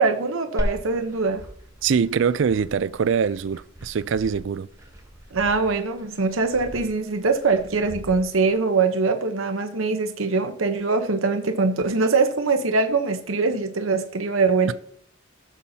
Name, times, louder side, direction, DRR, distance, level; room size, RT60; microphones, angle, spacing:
voice 1, 0.0-1.4 5.3-14.7, right 4 dB, 90° right, 1.0 m, -22 dB
Glass, 0.6-8.5, equal, 15° right, 2.7 m, -37 dB
voice 2, 1.8-4.7, right 6 dB, 65° right, 0.4 m, -23 dB
14.5 x 7.3 x 2.8 m
head